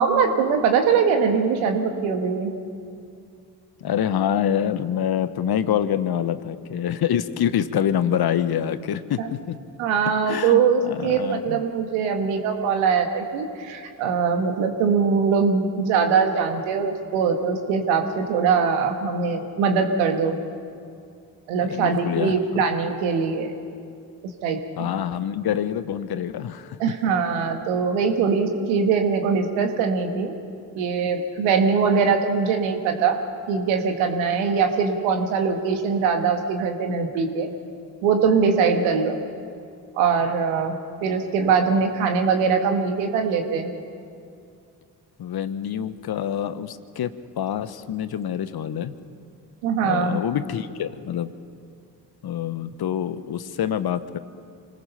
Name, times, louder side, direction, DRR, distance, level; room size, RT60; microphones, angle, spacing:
voice 1, 0.0-2.5 9.2-9.3 9.8-20.4 21.5-23.5 24.4-25.0 26.8-30.3 30.7-33.2 33.5-37.5 38.0-39.2 40.0-40.7 41.0-43.7 49.6-50.2, right 5 dB, 75° right, 5 dB, 1.9 m, -22 dB
voice 2, 3.8-9.6 10.3-11.6 21.6-22.6 24.8-26.8 45.2-48.9 49.8-51.3 52.2-54.2, left 9 dB, 50° left, 13 dB, 1.2 m, -26 dB
25.5 x 19.0 x 5.7 m, 2.4 s
hypercardioid pair, 45°, 47 cm